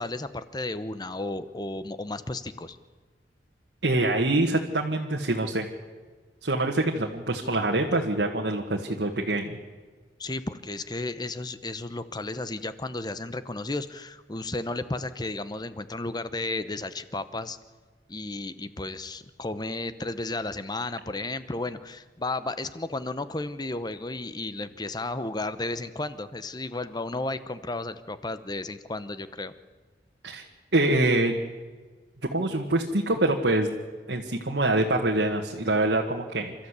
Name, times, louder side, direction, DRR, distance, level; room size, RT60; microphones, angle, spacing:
voice 1, 0.0-2.8 10.2-17.6 18.1-29.5, left 2 dB, 25° left, 13 dB, 0.9 m, -33 dB
voice 2, 3.8-5.7 6.4-9.6 30.2-30.4 30.7-31.4 32.3-33.7 34.1-36.5, right 2 dB, 65° right, 1 dB, 1.7 m, -25 dB
28.5 x 13.5 x 8.2 m, 1.5 s
head